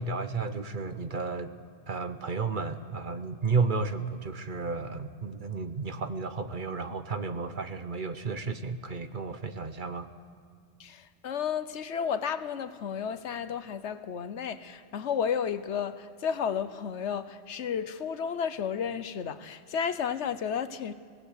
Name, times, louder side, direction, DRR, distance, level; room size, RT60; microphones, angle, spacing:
voice 1, 0.0-1.5 1.9-10.1, right 4 dB, 50° right, 1.0 m, -32 dB
voice 2, 10.8-20.9, left 7 dB, 75° left, 1.1 m, -32 dB
25.0 x 17.5 x 6.6 m
omnidirectional pair, 1.2 m